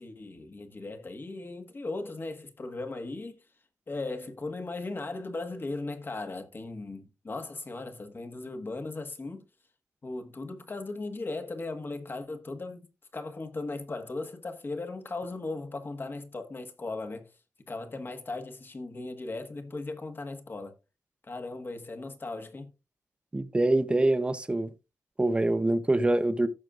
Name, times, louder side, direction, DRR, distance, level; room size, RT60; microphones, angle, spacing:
voice 1, 0.0-3.4 3.9-9.4 10.0-12.9 13.1-17.3 17.7-20.7 21.2-22.7, left 3 dB, 35° left, 1.5 m, -37 dB
voice 2, 23.3-24.7 25.2-26.5, right 2 dB, 20° right, 0.8 m, -25 dB
15.5 x 6.4 x 2.5 m
wide cardioid pair, 100°, 6 cm